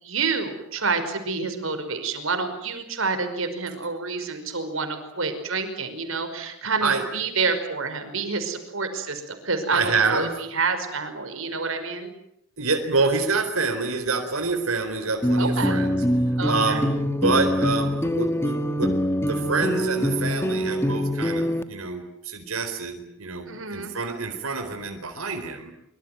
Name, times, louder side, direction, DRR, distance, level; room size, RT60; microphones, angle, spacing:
voice 1, 0.0-12.1 15.4-15.7 16.4-16.8 23.5-23.9, right 4 dB, 70° right, 8 dB, 5.4 m, -28 dB
voice 2, 9.7-10.3 12.6-16.0 16.4-16.9 17.2-18.9 19.2-25.7, right 4 dB, 85° right, 5 dB, 4.3 m, -26 dB
sound 1, 15.2-21.6, equal, 10° left, 1.3 m, -24 dB
25.5 x 25.0 x 9.3 m, 0.78 s
head